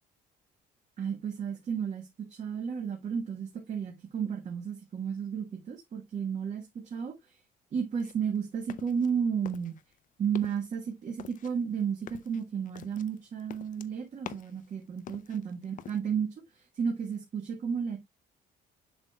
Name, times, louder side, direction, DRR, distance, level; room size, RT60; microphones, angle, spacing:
voice 1, 1.0-7.4 7.7-9.8 10.2-18.0, right 7 dB, 45° right, 1.4 m, -33 dB
sound 1, 8.0-9.1 9.5-10.0 10.2-10.7 11.2-14.7 15.0-16.0, left 10 dB, 50° left, 0.6 m, -46 dB
7.2 x 6.3 x 2.3 m
cardioid pair, 110°, 17 cm